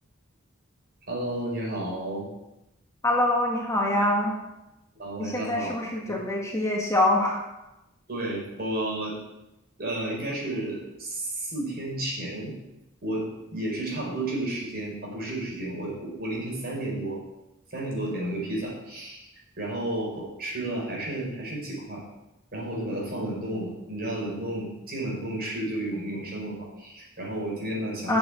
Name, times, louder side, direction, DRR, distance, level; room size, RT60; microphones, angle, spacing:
voice 1, 1.1-2.3 5.0-5.8 8.1-9.1 9.8-12.5 13.0-17.2 17.7-19.3 19.6-22.0 22.5-28.2, right 1 dB, 50° right, -3 dB, 5.0 m, -32 dB
voice 2, 3.0-4.3 5.2-7.4 28.1-28.2, left 1 dB, 15° left, -1 dB, 1.7 m, -24 dB
8.4 x 7.9 x 8.6 m, 0.94 s
head